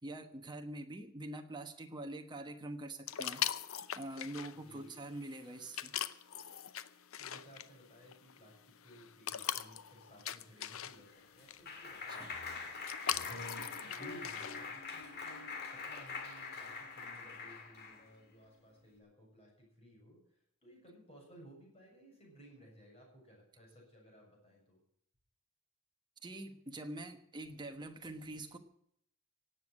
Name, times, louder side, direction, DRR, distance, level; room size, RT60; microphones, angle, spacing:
voice 1, 0.0-3.4 3.9-5.9 12.1-12.3 26.2-28.6, right 1 dB, 20° right, 5 dB, 1.2 m, -45 dB
sound 1, 3.1-14.7, left 10 dB, 65° left, 0.7 m, -42 dB
voice 2, 4.5-4.9 7.2-24.8, right 1 dB, 25° left, -1 dB, 7.0 m, -58 dB
Clapping, 10.8-18.1, left 4 dB, 45° left, 2.1 m, -44 dB
17.5 x 8.2 x 7.6 m, 0.69 s
head